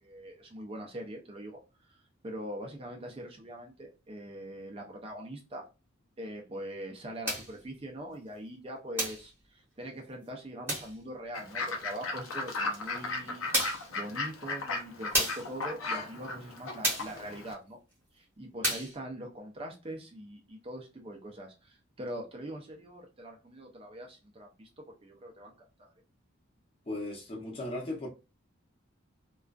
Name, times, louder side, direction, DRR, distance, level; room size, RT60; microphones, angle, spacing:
voice 1, 0.0-1.6 1.9-2.0 2.2-5.6 6.2-17.8 18.1-25.5 25.8-25.9, right 1 dB, 25° right, 0.4 m, -42 dB
sound 1, 7.2-7.5 9.0-9.3 10.7-11.0 12.7-12.8 13.5-13.9 15.1-15.5 16.8-17.2 18.6-19.0, right 1 dB, 10° right, 1.0 m, -31 dB
Fowl / Bird, 11.3-17.5, left 3 dB, 80° left, 0.6 m, -36 dB
voice 2, 26.9-28.1, left 1 dB, 30° left, 0.6 m, -36 dB
2.4 x 2.3 x 2.2 m
head